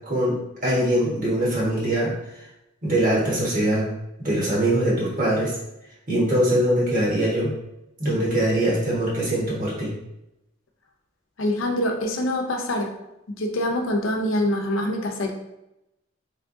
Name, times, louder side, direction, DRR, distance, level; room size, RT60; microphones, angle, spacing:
voice 1, 0.1-2.1 2.8-3.9 4.2-5.5 6.1-7.5 8.0-9.9, right 1 dB, 45° right, -6 dB, 1.3 m, -22 dB
voice 2, 11.4-13.0 13.4-15.3, left 1 dB, 85° left, 2 dB, 0.6 m, -25 dB
3.5 x 3.3 x 2.6 m, 0.89 s
head